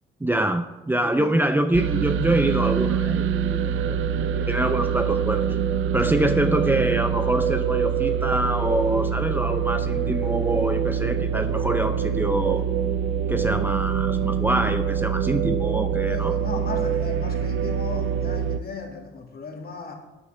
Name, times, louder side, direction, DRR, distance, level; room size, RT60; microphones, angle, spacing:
voice 1, 0.2-5.6 5.9-12.6 13.3-16.3, right 1 dB, 10° right, 8 dB, 0.6 m, -25 dB
voice 2, 1.0-1.5 3.6-3.9 6.0-6.2 16.1-20.0, left 4 dB, 50° left, 2 dB, 2.1 m, -36 dB
sound 1, 1.7-18.6, right 8 dB, 85° right, 0.5 m, -25 dB
12.0 x 9.8 x 3.4 m, 1.1 s
cardioid pair, 90°, 20 cm